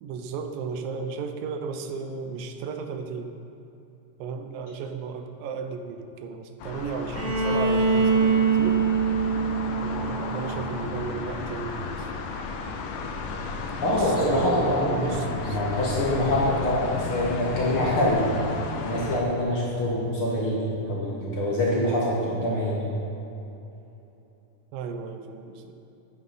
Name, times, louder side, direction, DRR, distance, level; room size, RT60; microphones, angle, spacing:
voice 1, 0.0-3.3 4.2-8.8 9.8-12.1 13.8-15.6 24.7-25.7, right 5 dB, 80° right, 7 dB, 2.4 m, -34 dB
sound 1, 6.6-19.2, left 4 dB, 75° left, 2.4 m, -34 dB
Bowed string instrument, 7.1-11.0, right 5 dB, 55° right, 0.8 m, -24 dB
voice 2, 13.8-15.2 15.5-18.3 18.7-22.9, left 1 dB, 50° left, -5 dB, 1.9 m, -25 dB
9.7 x 9.5 x 5.6 m, 2.9 s
omnidirectional pair, 4.0 m